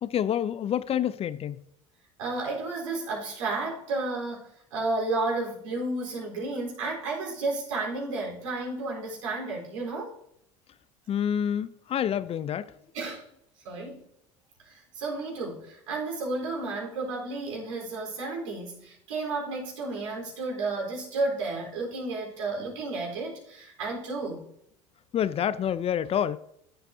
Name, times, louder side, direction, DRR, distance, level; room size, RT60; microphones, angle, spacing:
voice 1, 0.0-1.6 11.1-12.7 25.1-26.4, left 9 dB, 35° left, 0.5 m, -28 dB
voice 2, 2.2-10.1 12.9-13.2 13.6-14.0 14.6-24.4, right 3 dB, 80° right, 4.1 m, -32 dB
14.5 x 7.9 x 2.8 m
hypercardioid pair, 75°, 17 cm